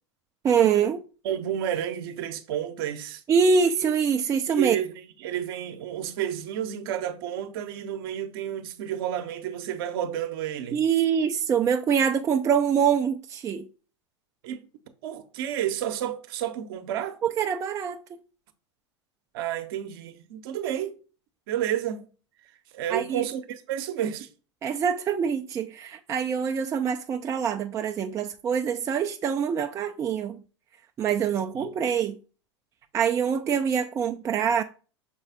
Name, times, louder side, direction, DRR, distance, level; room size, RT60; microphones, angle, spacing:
voice 1, 0.4-1.0 3.3-4.8 10.7-13.7 17.2-18.2 22.9-23.2 24.6-30.4 31.0-32.2 32.9-34.6, right 7 dB, 20° right, 0.4 m, -24 dB
voice 2, 1.2-3.2 4.5-10.9 14.4-14.6 15.0-17.2 19.3-21.0 21.5-22.1 22.7-24.3 31.5-31.7, right 10 dB, 50° right, 0.8 m, -31 dB
6.2 x 4.0 x 3.8 m
figure-of-eight pair, 90°, 15 cm